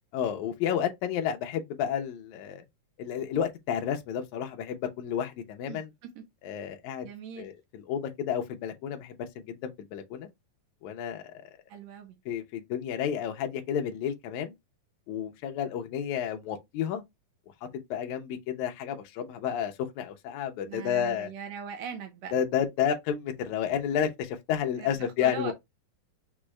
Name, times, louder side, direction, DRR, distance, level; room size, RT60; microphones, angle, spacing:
voice 1, 0.1-2.6 3.0-5.9 6.4-7.1 7.4-10.3 10.8-11.3 12.3-14.5 15.1-17.0 17.9-21.3 22.3-25.5, left 9 dB, 75° left, 1.8 m, -31 dB
voice 2, 5.7-6.2 7.0-7.5 11.7-12.2 20.7-22.3 24.8-25.5, right 7 dB, 70° right, 1.7 m, -40 dB
6.2 x 2.4 x 3.1 m
omnidirectional pair, 4.0 m